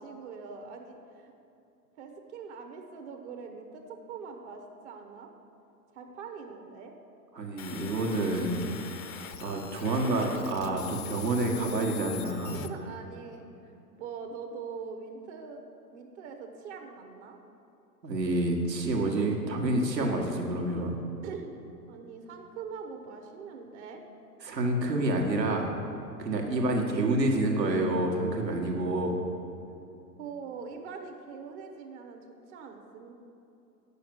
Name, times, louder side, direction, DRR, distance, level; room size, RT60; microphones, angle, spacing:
voice 1, 0.0-1.3 2.0-5.3 5.9-6.9 12.5-13.7 14.0-15.6 15.9-17.4 21.2-21.5 21.9-24.0 29.7-29.8 30.2-32.2 32.5-33.1, right 5 dB, 45° right, 4 dB, 1.1 m, -43 dB
voice 2, 7.3-8.6 9.4-12.6 18.0-20.9 24.4-25.7 26.2-29.2, right 2 dB, 75° right, 1 dB, 1.6 m, -28 dB
sound 1, 7.6-12.7, left 10 dB, 50° left, 0.7 m, -43 dB
9.7 x 6.4 x 6.1 m, 2.9 s
figure-of-eight pair, 105°, 50 cm